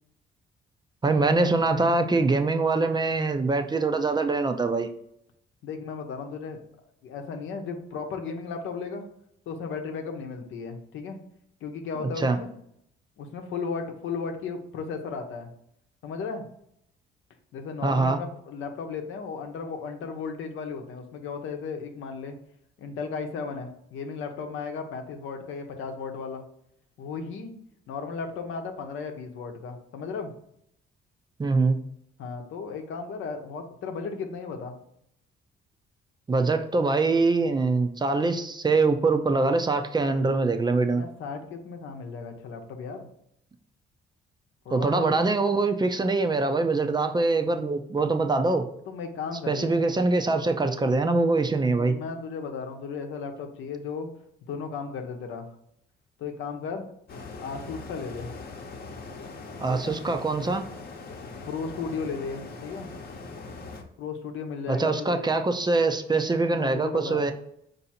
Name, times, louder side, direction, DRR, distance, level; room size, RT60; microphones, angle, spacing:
voice 1, 1.0-4.9 12.2-12.4 17.8-18.2 31.4-31.8 36.3-41.0 44.7-48.6 49.5-52.0 59.6-60.6 64.7-67.3, right 3 dB, 20° right, 6 dB, 0.5 m, -23 dB
voice 2, 5.6-6.6 7.0-9.1 9.5-11.2 11.6-12.5 13.2-15.5 16.0-16.5 17.5-22.4 22.8-26.4 27.0-27.5 27.9-30.3 32.2-34.8 40.9-43.1 44.6-45.3 48.9-49.7 51.6-54.1 54.5-55.5 56.2-56.9 57.4-58.3 59.7-60.0 61.5-62.9 64.0-65.3 66.4-67.3, left 5 dB, 80° left, 5 dB, 0.8 m, -35 dB
sound 1, 57.1-63.8, left 3 dB, 50° left, 0.9 m, -41 dB
4.7 x 2.7 x 4.2 m, 0.73 s
cardioid pair, 90°, 20 cm